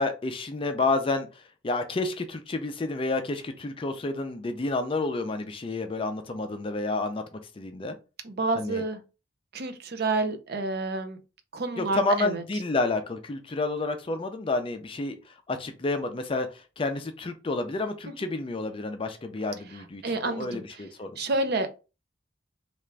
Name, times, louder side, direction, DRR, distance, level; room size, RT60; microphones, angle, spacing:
voice 1, 0.0-8.0 8.5-8.8 11.8-21.2, left 2 dB, 30° left, 0.4 m, -30 dB
voice 2, 8.2-9.0 9.5-11.2 11.5-12.4 20.0-20.8 21.2-21.7, right 3 dB, 55° right, 0.5 m, -29 dB
3.3 x 2.5 x 3.2 m
head